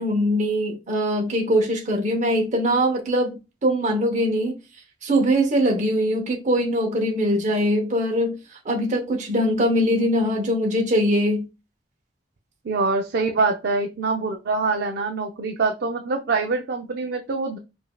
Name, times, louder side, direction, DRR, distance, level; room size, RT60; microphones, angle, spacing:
voice 1, 0.0-4.6 5.0-8.4 8.6-11.5, equal, 45° right, 0.8 m, -22 dB
voice 2, 12.6-17.6, right 3 dB, 60° right, 0.4 m, -24 dB
4.9 x 2.6 x 2.2 m
head